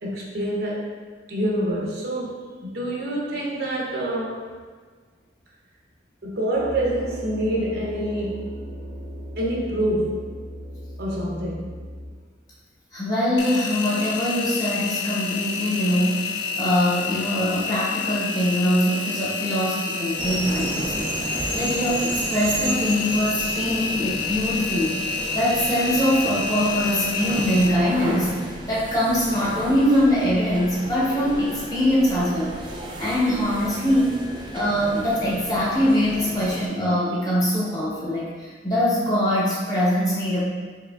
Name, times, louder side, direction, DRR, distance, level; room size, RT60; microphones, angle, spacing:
voice 1, 0.0-0.9 1.3-4.5 6.2-8.6 9.4-10.4 11.0-11.7, right 1 dB, 60° right, -3 dB, 0.7 m, -26 dB
sound 1, 6.5-12.1, equal, 60° left, 1.2 m, -37 dB
voice 2, 12.9-16.3 16.6-28.3 28.7-34.2 34.5-40.5, equal, 20° left, -7 dB, 0.9 m, -23 dB
Engine, 13.4-27.7, left 4 dB, 75° left, 0.4 m, -29 dB
sound 2, 20.2-36.7, right 2 dB, 25° right, 0.4 m, -34 dB
4.7 x 3.0 x 2.3 m, 1.5 s
head